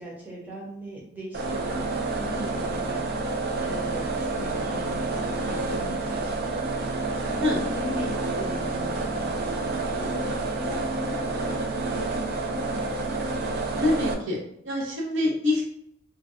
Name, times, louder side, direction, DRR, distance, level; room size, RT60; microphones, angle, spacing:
voice 1, 0.0-12.9, equal, 10° right, -5 dB, 0.6 m, -39 dB
sound 1, 1.3-14.1, right 2 dB, 50° right, 0.3 m, -29 dB
voice 2, 13.8-14.4 14.6-15.6, left 2 dB, 70° right, -2 dB, 0.7 m, -25 dB
2.6 x 2.1 x 2.4 m, 0.73 s
head